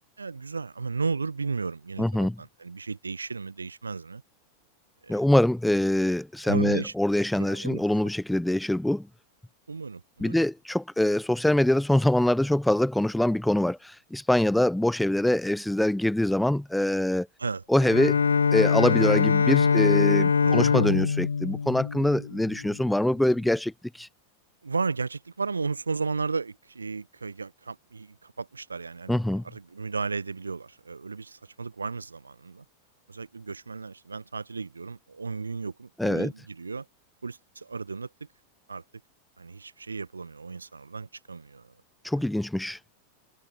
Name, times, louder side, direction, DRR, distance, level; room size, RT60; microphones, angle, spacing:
voice 1, 0.2-4.2 5.0-5.2 6.4-6.9 7.4-8.0 9.7-10.4 17.4-17.6 20.4-20.6 24.6-32.6 33.1-36.9 37.2-38.3 38.7-38.8 39.4-41.7 42.2-42.3, right 4 dB, 75° right, 4.2 m, -34 dB
voice 2, 2.0-2.4 5.1-9.1 10.2-17.3 17.7-18.2 18.5-24.1 29.1-29.4 36.0-36.3 42.0-42.8, left 1 dB, 5° left, 1.2 m, -24 dB
Bowed string instrument, 17.8-22.7, left 5 dB, 75° left, 3.1 m, -23 dB
figure-of-eight pair, 90°, 0 cm